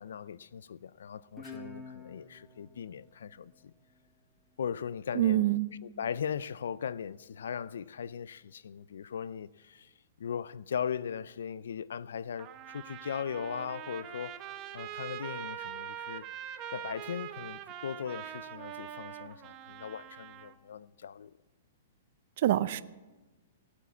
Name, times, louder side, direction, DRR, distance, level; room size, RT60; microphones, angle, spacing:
voice 1, 0.0-3.7 4.6-5.4 5.8-9.9 10.2-14.5 14.7-16.3 16.7-21.3, left 7 dB, 85° left, 0.4 m, -38 dB
Guitar, 1.4-4.6, left 3 dB, 5° left, 1.4 m, -50 dB
voice 2, 5.1-5.7 22.4-22.8, right 13 dB, 50° right, 0.5 m, -26 dB
Trumpet, 12.4-20.5, right 10 dB, 25° right, 0.8 m, -43 dB
18.0 x 8.3 x 8.2 m
hypercardioid pair, 160°, 0 cm